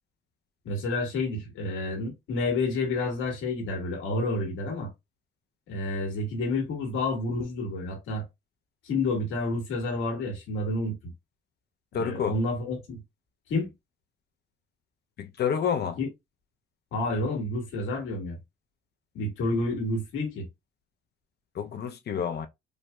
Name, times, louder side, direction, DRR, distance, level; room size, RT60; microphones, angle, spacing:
voice 1, 0.6-4.9 5.7-8.2 8.8-11.1 11.9-13.0 13.5-13.7 16.0-16.1 16.9-18.4 19.1-20.5, left 2 dB, 85° left, 1.8 m, -29 dB
voice 2, 11.9-12.3 15.2-16.0 21.5-22.5, left 7 dB, 55° left, 0.6 m, -29 dB
4.7 x 2.6 x 2.2 m
cardioid pair, 90°, 20 cm